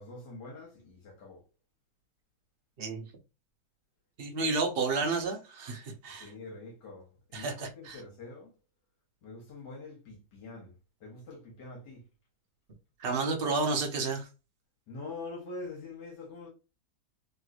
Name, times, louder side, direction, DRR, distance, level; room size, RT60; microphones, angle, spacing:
voice 1, 0.0-1.4 6.2-8.5 9.2-12.1 14.9-16.5, left 3 dB, 70° left, 1.6 m, -45 dB
voice 2, 4.2-6.3 7.3-8.0 13.0-14.3, right 3 dB, 55° right, 0.6 m, -31 dB
3.2 x 3.0 x 2.4 m
omnidirectional pair, 2.0 m